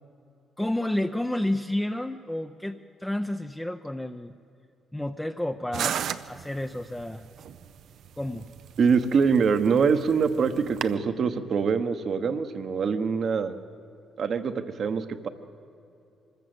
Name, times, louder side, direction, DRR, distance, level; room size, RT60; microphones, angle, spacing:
voice 1, 0.6-4.3 4.9-6.0 6.3-7.2 8.2-8.4, left 1 dB, 10° left, 5 dB, 0.6 m, -30 dB
sound 1, 5.7-11.0, right 9 dB, 70° right, 0.6 m, -36 dB
voice 2, 8.8-13.6 14.2-15.3, right 5 dB, 55° right, 10 dB, 1.1 m, -24 dB
24.5 x 14.0 x 7.9 m, 2.7 s
cardioid pair, 90°, 0 cm